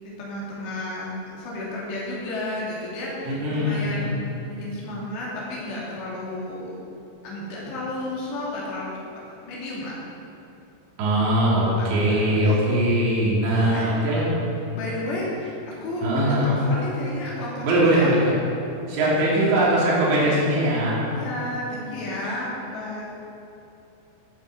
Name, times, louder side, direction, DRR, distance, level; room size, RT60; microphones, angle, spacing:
voice 1, 0.0-6.8 7.2-8.9 9.3-10.0 11.8-12.6 13.4-14.1 14.7-18.2 19.0-19.5 21.1-23.1, left 1 dB, 75° left, -5 dB, 5.1 m, -32 dB
voice 2, 3.3-4.1 11.0-14.3 16.0-16.5 17.6-18.3 18.9-21.0, right 1 dB, 85° right, -6 dB, 5.2 m, -21 dB
16.0 x 9.7 x 6.9 m, 2.7 s
omnidirectional pair, 5.0 m